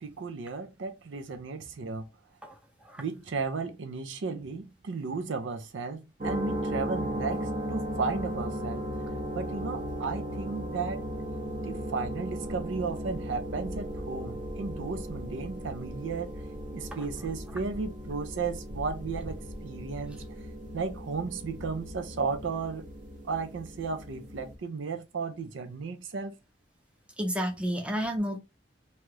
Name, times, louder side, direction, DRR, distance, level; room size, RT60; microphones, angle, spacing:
voice 1, 0.0-2.1 3.0-8.9 9.3-11.0 11.6-16.3 16.7-20.2 20.7-22.9 23.2-26.4, right 4 dB, 80° right, 0.5 m, -34 dB
voice 2, 2.4-3.0 16.9-17.1 27.2-28.4, equal, 5° right, 0.5 m, -32 dB
sound 1, 6.2-24.6, equal, 45° right, 0.7 m, -36 dB
2.8 x 2.3 x 3.1 m
head